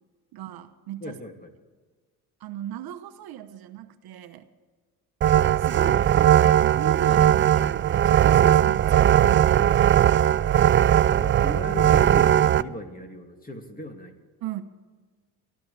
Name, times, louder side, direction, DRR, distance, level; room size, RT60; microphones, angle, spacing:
voice 1, 0.3-1.2 2.4-4.5 5.6-10.2 14.4-14.6, right 11 dB, 65° right, 9 dB, 1.1 m, -37 dB
voice 2, 1.0-1.5 11.1-14.1, left 1 dB, 20° left, 4 dB, 2.5 m, -37 dB
sound 1, 5.2-12.6, right 10 dB, 30° right, 0.4 m, -19 dB
22.5 x 13.0 x 3.4 m, 1.4 s
supercardioid pair, 80°, 39 cm